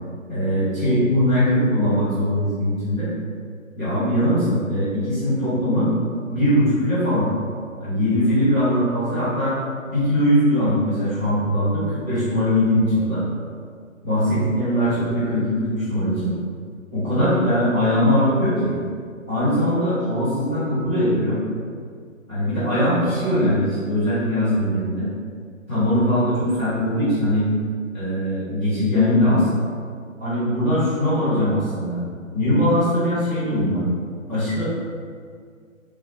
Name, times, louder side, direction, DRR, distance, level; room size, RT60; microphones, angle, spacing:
voice 1, 0.3-3.1 3.8-5.9 6.3-7.3 7.8-9.6 9.9-13.2 14.0-16.3 16.9-18.7 19.3-21.4 22.3-25.1 25.7-27.5 27.9-29.5 30.2-32.0 32.3-33.8 34.3-34.6, equal, 10° right, -17 dB, 0.6 m, -21 dB
2.9 x 2.1 x 3.1 m, 2.1 s
figure-of-eight pair, 145°, 40 cm